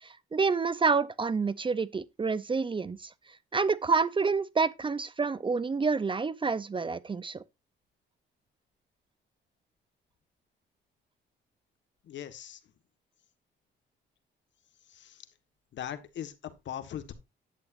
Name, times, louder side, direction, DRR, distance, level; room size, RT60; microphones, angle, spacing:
voice 1, 0.0-3.1 3.5-7.4, right 4 dB, 25° right, 0.5 m, -28 dB
voice 2, 12.0-12.6 14.9-15.2 15.7-17.1, left 10 dB, 65° left, 1.4 m, -40 dB
11.0 x 8.5 x 2.5 m
cardioid pair, 90°, 20 cm